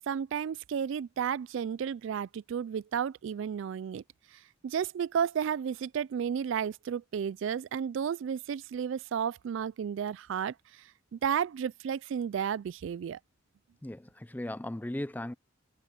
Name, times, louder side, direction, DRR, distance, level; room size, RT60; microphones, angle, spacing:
voice 1, 0.1-4.0 4.3-13.2, right 7 dB, 65° right, 0.3 m, -33 dB
voice 2, 13.8-15.3, left 1 dB, 10° left, 0.4 m, -37 dB
head